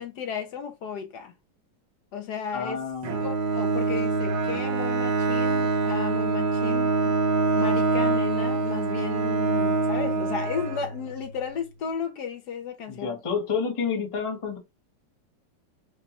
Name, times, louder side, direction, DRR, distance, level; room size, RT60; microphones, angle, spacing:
voice 1, 0.0-1.3 2.1-2.8 3.2-7.2 7.6-13.1, left 6 dB, 70° left, 1.1 m, -34 dB
voice 2, 2.5-3.2 12.9-14.6, left 6 dB, 25° left, 0.6 m, -29 dB
Bowed string instrument, 3.0-11.2, right 4 dB, 60° right, 1.4 m, -25 dB
5.2 x 2.2 x 2.8 m
omnidirectional pair, 2.0 m